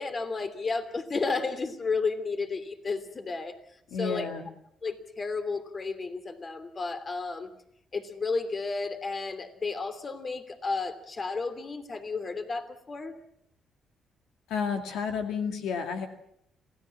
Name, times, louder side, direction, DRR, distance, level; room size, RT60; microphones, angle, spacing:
voice 1, 0.0-3.6 4.0-4.3 4.8-7.5 7.9-13.1, left 4 dB, 35° left, 9 dB, 3.0 m, -32 dB
voice 2, 3.9-4.5 14.5-16.1, left 6 dB, 85° left, 5 dB, 2.2 m, -31 dB
27.0 x 17.5 x 7.3 m, 0.73 s
cardioid pair, 90°, 0 cm